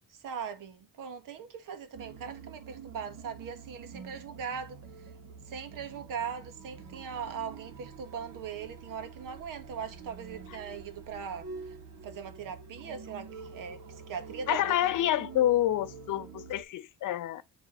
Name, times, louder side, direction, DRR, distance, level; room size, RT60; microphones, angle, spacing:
voice 1, 0.1-4.8 5.5-11.7 12.0-14.7, right 7 dB, 75° right, 1.5 m, -40 dB
sound 1, 1.9-16.6, right 5 dB, 55° right, 1.9 m, -47 dB
voice 2, 14.5-17.4, left 12 dB, 70° left, 0.8 m, -28 dB
9.6 x 3.4 x 4.3 m
cardioid pair, 130°, 33 cm